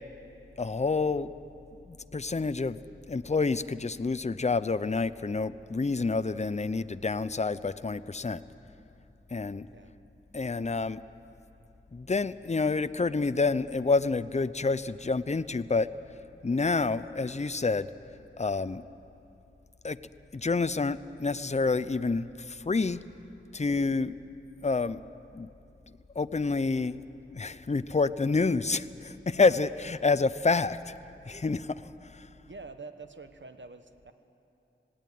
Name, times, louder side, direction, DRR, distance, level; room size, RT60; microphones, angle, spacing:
voice 1, 0.6-1.3 1.9-8.4 9.3-9.7 10.3-11.0 11.9-15.9 16.4-17.9 18.4-18.8 19.8-20.0 20.3-23.0 23.5-24.1 24.6-25.0 25.3-25.5 26.2-27.0 27.3-30.9 31.2-32.3, left 4 dB, 35° left, 15 dB, 0.5 m, -28 dB
voice 2, 32.5-34.1, right 3 dB, 65° right, 9 dB, 1.1 m, -46 dB
18.0 x 17.5 x 9.3 m, 2.8 s
wide cardioid pair, 50°, 21 cm